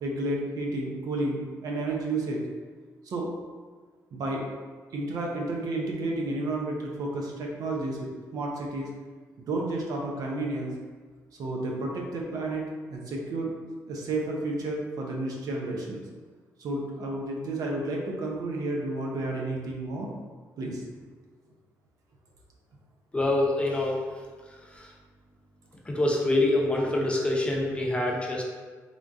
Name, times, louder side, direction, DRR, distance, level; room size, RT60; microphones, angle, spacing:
voice 1, 0.0-2.4 3.0-3.3 4.1-4.6 4.9-8.9 9.4-10.7 11.4-13.5 13.9-16.0 16.6-20.1 20.6-20.8, right 2 dB, 65° right, -1 dB, 0.7 m, -31 dB
voice 2, 23.1-24.0 24.7-24.9 25.8-28.5, left 2 dB, 15° left, -2 dB, 0.8 m, -25 dB
3.6 x 2.5 x 3.6 m, 1.5 s
cardioid pair, 75°, 7 cm